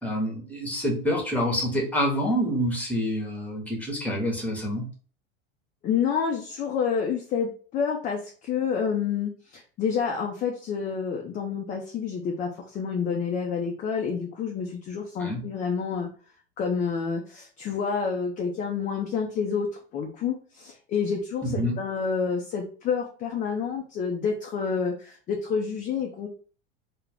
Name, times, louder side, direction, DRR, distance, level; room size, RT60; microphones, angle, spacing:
voice 1, 0.0-4.8 15.2-15.4 21.4-21.7, equal, 5° left, -2 dB, 0.9 m, -27 dB
voice 2, 5.8-16.1 16.6-26.3, left 6 dB, 25° left, 1 dB, 0.4 m, -28 dB
2.3 x 2.0 x 3.3 m, 0.40 s
supercardioid pair, 120°, 31 cm